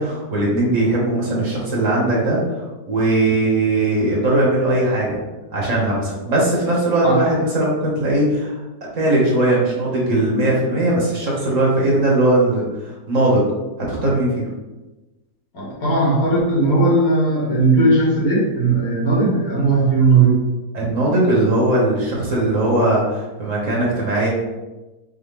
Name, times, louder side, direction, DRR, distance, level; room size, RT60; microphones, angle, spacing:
voice 1, 0.0-5.2 5.5-8.6 8.9-13.5 13.9-14.5 20.7-24.3, right 1 dB, 55° right, -4 dB, 1.4 m, -19 dB
voice 2, 15.5-20.4, right 3 dB, 65° left, -5 dB, 1.8 m, -17 dB
5.6 x 2.2 x 3.5 m, 1.1 s
omnidirectional pair, 1.7 m